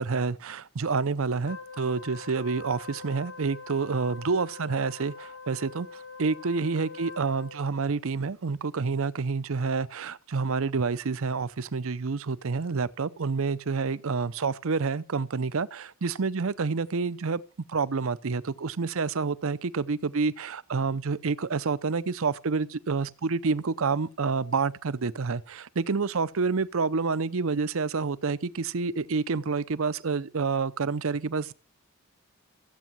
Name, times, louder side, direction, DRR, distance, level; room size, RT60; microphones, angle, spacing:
voice 1, 0.0-17.4 17.7-31.5, right 4 dB, 65° right, 0.6 m, -28 dB
Wind instrument woodwind instrument, 1.4-7.7, left 4 dB, 70° left, 2.6 m, -44 dB
15.0 x 8.2 x 7.4 m
head